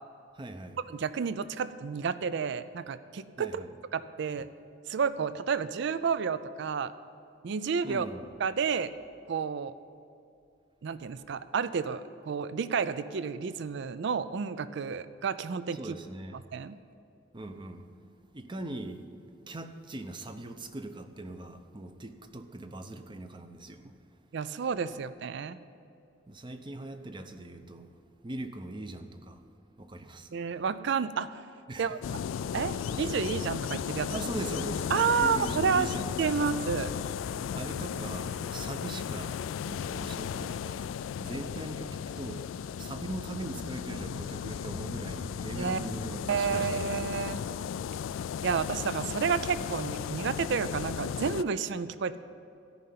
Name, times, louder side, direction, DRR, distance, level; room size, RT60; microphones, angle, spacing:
voice 1, 0.3-0.8 3.4-3.7 7.8-8.2 15.7-16.4 17.3-17.9 18.3-19.1 19.5-24.0 26.3-29.4 29.8-30.4 31.7-32.0 34.1-34.9 35.2-36.4 37.5-42.5 42.8-47.1, right 2 dB, 25° right, 8 dB, 0.6 m, -41 dB
voice 2, 0.9-3.6 3.9-4.5 4.9-6.9 7.4-8.1 8.4-8.9 9.3-9.7 10.8-15.8 16.3-16.8 24.3-25.6 30.3-31.4 31.8-32.0 32.5-34.2 34.9-36.9 45.6-45.8 46.3-47.4 48.4-52.2, right 6 dB, 65° right, 14 dB, 0.4 m, -30 dB
sound 1, 32.0-51.4, left 8 dB, 90° left, 0.3 m, -35 dB
13.5 x 5.6 x 9.3 m, 2.5 s
head